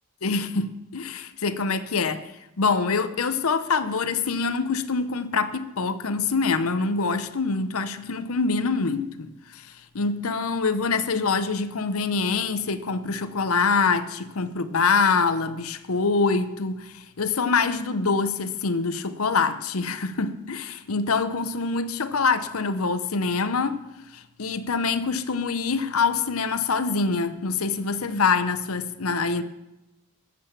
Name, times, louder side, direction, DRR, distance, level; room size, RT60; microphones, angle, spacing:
voice 1, 0.2-2.3 2.6-23.8 24.1-29.4, left 4 dB, 85° left, 0.8 m, -25 dB
13.5 x 7.9 x 7.2 m
head